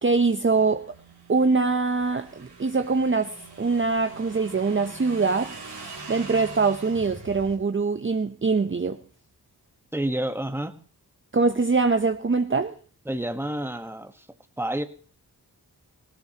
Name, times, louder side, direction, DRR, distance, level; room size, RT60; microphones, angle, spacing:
voice 1, 0.0-0.8 1.3-5.5 6.1-9.0 11.3-12.7, right 4 dB, 30° right, 0.7 m, -23 dB
Motorcycle / Engine, 0.5-7.6, right 3 dB, 85° right, 3.5 m, -43 dB
voice 2, 9.9-10.7 13.1-14.3 14.6-14.8, right 1 dB, 5° right, 1.2 m, -29 dB
18.0 x 16.5 x 2.9 m
cardioid pair, 45°, 40 cm